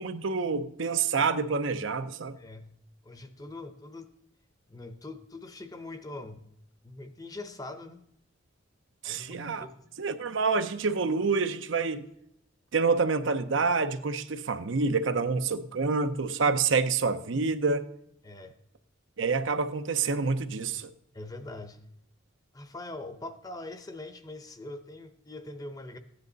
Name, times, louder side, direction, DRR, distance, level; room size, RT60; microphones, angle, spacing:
voice 1, 0.0-2.4 9.0-9.7 10.0-12.0 12.7-17.8 19.2-20.9, right 4 dB, 70° right, 10 dB, 0.7 m, -27 dB
voice 2, 2.4-2.8 3.0-4.1 4.7-6.5 6.8-8.0 9.0-9.9 18.2-18.5 21.1-21.8 22.5-26.0, left 2 dB, 20° left, 10 dB, 0.8 m, -42 dB
15.0 x 9.8 x 4.0 m, 0.75 s
head